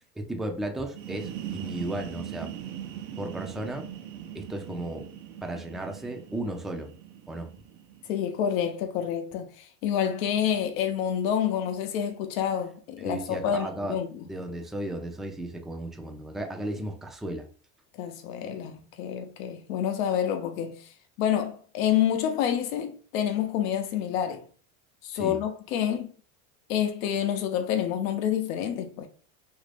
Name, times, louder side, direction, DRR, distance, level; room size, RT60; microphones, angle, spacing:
voice 1, 0.2-2.5 3.2-3.9 4.3-5.1 5.4-6.9 7.3-7.5 13.0-14.0 14.3-17.5 25.1-25.4, right 1 dB, ahead, 0.3 m, -34 dB
sound 1, 0.8-8.4, right 10 dB, 80° right, 0.7 m, -40 dB
voice 2, 8.1-14.1 18.0-20.9 21.2-24.4 25.0-26.1 26.7-29.1, left 9 dB, 80° left, 0.6 m, -28 dB
2.9 x 2.6 x 3.3 m
supercardioid pair, 100°, 39 cm